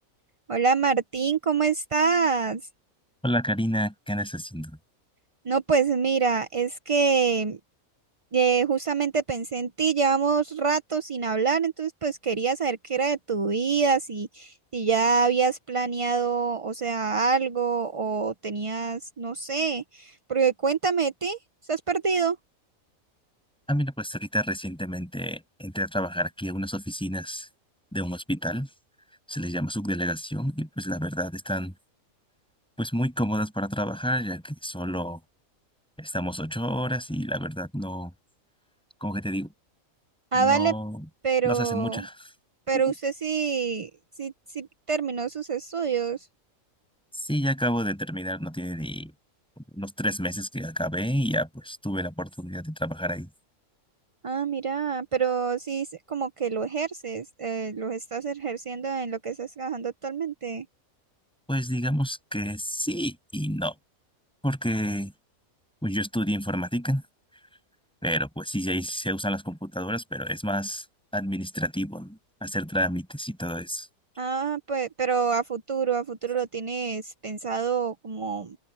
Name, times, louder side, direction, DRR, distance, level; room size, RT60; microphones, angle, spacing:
voice 1, 0.5-2.6 5.4-7.6 8.3-21.4 21.7-22.4 40.3-40.7 41.2-42.0 42.7-43.9 44.2-46.2 54.2-60.7 74.2-78.6, right 5 dB, 40° right, 0.4 m, -26 dB
voice 2, 3.2-4.7 23.7-27.5 27.9-28.7 29.3-31.7 32.8-35.2 36.0-38.1 39.0-39.5 40.3-41.0 41.4-42.3 42.9-43.0 47.1-49.1 49.7-53.3 61.5-63.7 64.4-65.1 65.8-67.0 68.0-70.8 71.1-73.9, equal, 5° left, 6.8 m, -29 dB
open air
omnidirectional pair, 1.5 m